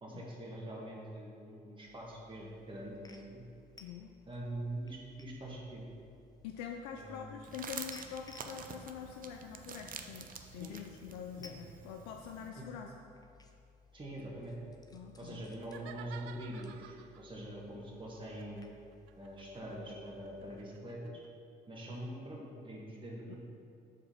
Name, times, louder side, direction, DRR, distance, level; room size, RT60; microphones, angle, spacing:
voice 1, 0.0-3.4 4.3-5.8 6.9-7.3 10.3-10.7 11.4-11.5 12.6-12.7 13.9-14.6 15.2-18.7 19.2-21.2 21.7-23.4, right 1 dB, 25° right, -4 dB, 1.8 m, -44 dB
sound 1, 1.9-20.7, left 3 dB, 20° left, 0.8 m, -61 dB
voice 2, 3.8-4.1 6.4-12.9 14.9-15.4 23.3-23.4, left 8 dB, 90° left, 3 dB, 0.4 m, -45 dB
sound 2, 7.4-12.5, right 6 dB, 45° right, 0.7 m, -48 dB
sound 3, 15.6-17.3 18.2-21.3, right 10 dB, 75° right, 0.4 m, -53 dB
6.4 x 4.8 x 5.8 m, 2.5 s
hypercardioid pair, 60°, 20 cm